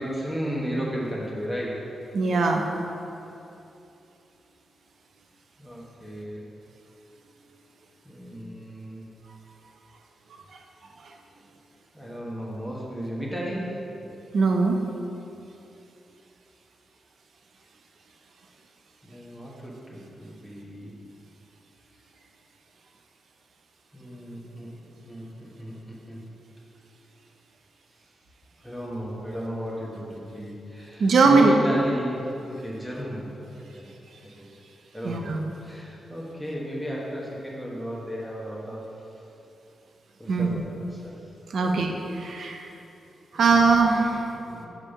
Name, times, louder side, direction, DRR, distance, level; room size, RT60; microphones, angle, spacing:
voice 1, 0.0-1.8 5.6-6.5 8.0-9.1 11.9-13.8 19.0-20.9 23.9-24.7 25.0-26.2 28.6-33.8 34.4-34.5 34.9-39.2 40.2-41.2 41.6-41.8 43.3-43.9 44.1-44.7, equal, 5° right, -4 dB, 1.2 m, -34 dB
voice 2, 2.1-2.7 14.3-14.8 31.0-31.5 35.0-35.4 40.3-40.5 41.5-41.9 42.2-42.6 43.3-44.2, right 4 dB, 65° right, 3 dB, 0.7 m, -20 dB
5.3 x 5.1 x 5.4 m, 2.8 s
wide cardioid pair, 125°, 0 cm